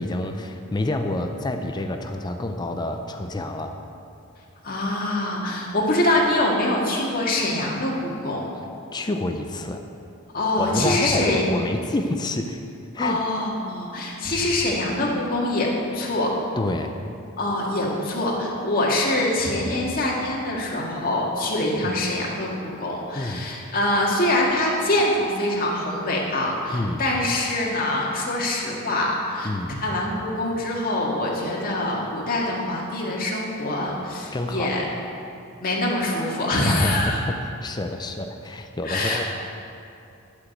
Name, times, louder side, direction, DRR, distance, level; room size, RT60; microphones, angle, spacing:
voice 1, 0.0-3.8 8.9-9.8 10.6-12.6 12.9-13.2 16.6-16.9 21.7-22.0 23.1-23.5 26.7-27.0 29.4-29.8 34.3-34.8 36.6-37.4 37.6-39.2, left 2 dB, 20° left, 5 dB, 0.5 m, -28 dB
voice 2, 4.6-8.4 10.3-11.4 13.0-16.3 17.4-29.5 29.8-34.8 35.6-37.2 38.8-39.2, left 1 dB, 45° left, -3 dB, 1.9 m, -24 dB
12.0 x 5.0 x 7.8 m, 2.6 s
head